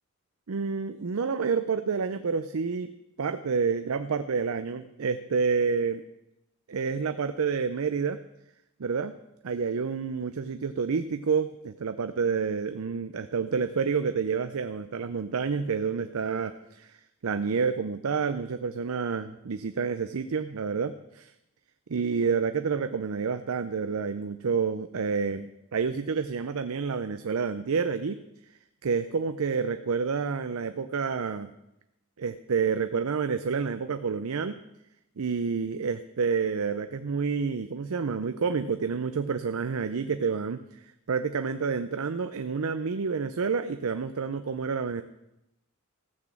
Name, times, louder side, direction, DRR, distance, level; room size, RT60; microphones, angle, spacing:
voice 1, 0.5-2.9 3.2-6.0 6.7-8.2 8.8-9.1 9.4-21.3 21.9-28.2 28.8-31.5 32.2-34.6 35.2-40.6 41.1-45.0, right 5 dB, 70° right, 9 dB, 0.5 m, -29 dB
15.0 x 6.1 x 7.3 m, 0.88 s
head